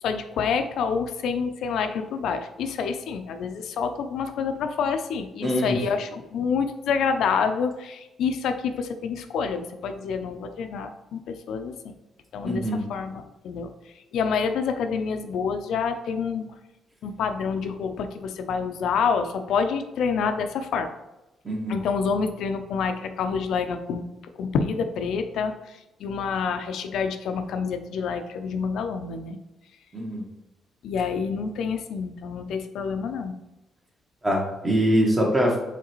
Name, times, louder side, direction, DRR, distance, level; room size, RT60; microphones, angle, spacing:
voice 1, 0.0-11.9 12.3-12.6 12.9-13.7 14.1-16.5 17.0-20.9 21.7-24.0 24.4-29.4 30.8-33.3, left 6 dB, 75° left, 7 dB, 0.4 m, -27 dB
voice 2, 5.4-5.8 12.4-12.8 21.4-21.8 29.9-30.2 34.2-35.5, equal, 20° right, -1 dB, 1.3 m, -23 dB
4.7 x 3.3 x 3.0 m, 0.99 s
cardioid pair, 90°, 0 cm